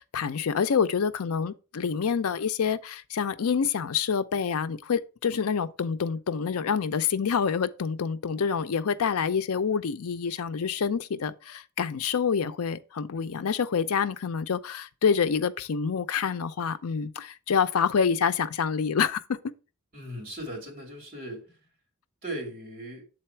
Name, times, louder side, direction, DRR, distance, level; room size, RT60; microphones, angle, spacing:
voice 1, 0.0-19.4, left 6 dB, 80° left, 0.5 m, -27 dB
voice 2, 19.9-21.6 22.2-23.0, right 1 dB, 40° right, 2.6 m, -38 dB
7.7 x 4.0 x 4.4 m
head